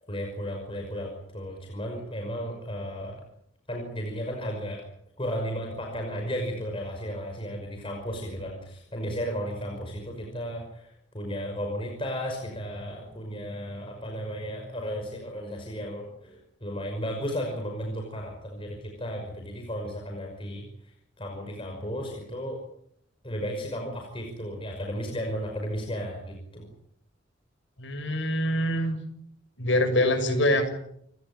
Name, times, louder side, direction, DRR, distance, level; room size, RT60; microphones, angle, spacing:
voice 1, 0.1-3.3 3.7-4.8 5.2-22.6 23.2-26.7, equal, 30° left, 1 dB, 5.7 m, -34 dB
voice 2, 27.8-29.0 29.6-30.7, left 1 dB, 75° left, 7 dB, 6.6 m, -24 dB
30.0 x 17.5 x 8.8 m, 0.72 s
head